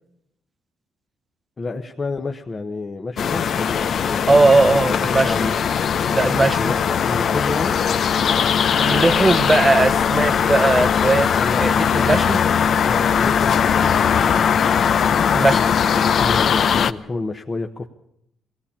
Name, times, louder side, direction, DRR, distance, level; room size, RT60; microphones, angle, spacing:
voice 1, 1.6-5.0 5.2-5.6 6.5-7.8 11.4-12.5 12.8-14.5 16.0-17.9, left 3 dB, 30° left, 3 dB, 1.2 m, -30 dB
sound 1, 3.2-16.9, left 7 dB, 60° left, 0.8 m, -19 dB
voice 2, 4.3-5.5 6.1-6.7 8.8-12.4 15.3-15.7, right 3 dB, 25° right, 15 dB, 0.8 m, -19 dB
20.5 x 17.0 x 8.7 m, 0.78 s
cardioid pair, 90°, 0 cm